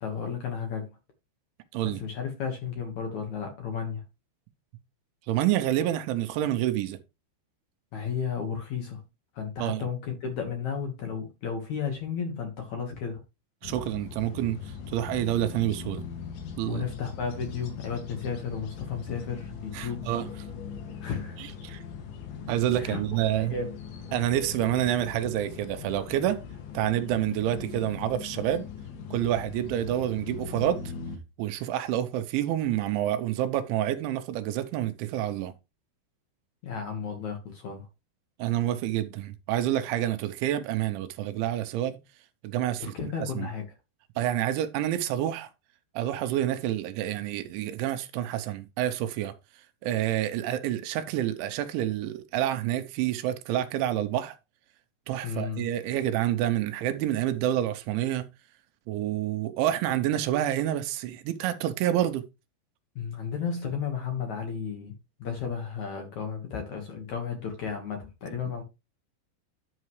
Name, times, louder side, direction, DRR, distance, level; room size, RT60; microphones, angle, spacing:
voice 1, 0.0-1.0 1.8-4.0 7.9-9.0 9.3-13.2 16.7-20.1 21.0-21.5 22.7-23.0 23.3-23.7 36.6-37.9 42.8-43.6 55.2-55.6 63.0-64.9 65.2-68.6, left 6 dB, 60° left, 2.1 m, -33 dB
voice 2, 5.3-7.0 9.6-9.8 13.6-16.0 16.6-16.8 19.7-20.3 21.4-21.8 22.5-23.6 24.1-26.4 26.7-28.7 29.1-30.8 31.4-35.5 38.4-42.0 42.4-42.9 43.2-43.5 44.2-45.5 45.9-49.3 49.8-54.4 55.1-58.3 58.9-62.2, right 12 dB, 85° right, 3.1 m, -28 dB
sound 1, 13.6-31.2, left 6 dB, 75° left, 4.4 m, -40 dB
10.5 x 6.5 x 3.2 m
omnidirectional pair, 5.4 m